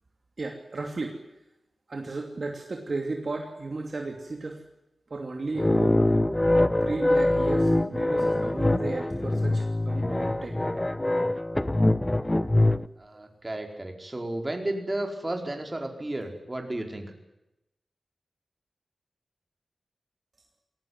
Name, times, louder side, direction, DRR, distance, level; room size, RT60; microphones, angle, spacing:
voice 1, 0.4-1.2 1.9-4.6 5.1-6.0 6.8-10.6, right 3 dB, 45° right, 3 dB, 2.9 m, -34 dB
sound 1, 5.6-12.9, left 1 dB, 15° left, 0.8 m, -24 dB
voice 2, 13.0-17.1, right 1 dB, 25° right, 4 dB, 4.6 m, -33 dB
21.5 x 18.5 x 9.6 m, 0.89 s
wide cardioid pair, 95°, 0 cm